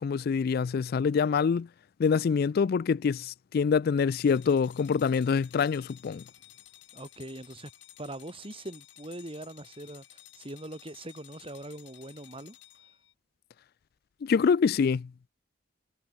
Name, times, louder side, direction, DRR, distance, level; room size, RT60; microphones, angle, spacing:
voice 1, 0.0-1.7 2.0-6.2 14.2-15.1, left 6 dB, 55° left, 0.3 m, -25 dB
sound 1, 4.1-13.1, left 13 dB, 75° left, 2.9 m, -54 dB
voice 2, 6.9-7.7 8.0-12.6, right 1 dB, 30° right, 3.5 m, -42 dB
head